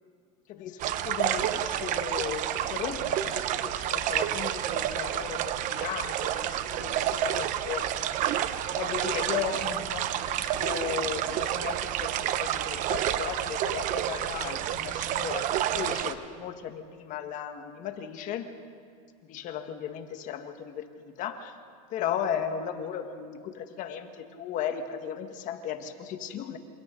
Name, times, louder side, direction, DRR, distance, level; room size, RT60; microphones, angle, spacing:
voice 1, 0.5-7.9 8.7-18.5 19.2-21.6 21.9-26.6, left 8 dB, 45° left, 7 dB, 1.7 m, -36 dB
sound 1, 0.8-16.1, right 11 dB, 45° right, 1.0 m, -29 dB
28.0 x 27.5 x 4.0 m, 2.3 s
supercardioid pair, 140°, 19 cm